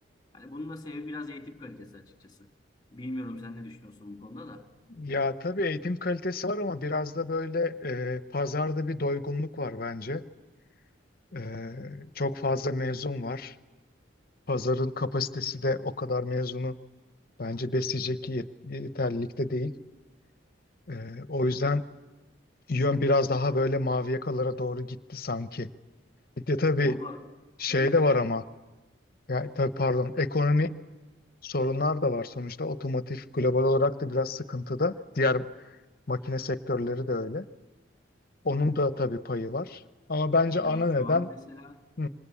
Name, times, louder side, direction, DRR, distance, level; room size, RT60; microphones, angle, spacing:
voice 1, 0.3-2.5 2.9-4.7 26.8-27.3 27.7-28.2 40.6-41.9, left 2 dB, 20° left, 5 dB, 2.1 m, -41 dB
voice 2, 5.0-10.2 11.3-13.5 14.5-16.7 17.4-19.7 20.9-21.9 22.7-25.7 26.4-27.0 27.6-28.4 29.3-30.8 31.4-35.4 36.1-37.4 38.4-39.8 40.1-41.3 42.0-42.1, left 2 dB, 50° left, 12 dB, 0.9 m, -28 dB
26.5 x 25.5 x 8.5 m, 1.2 s
head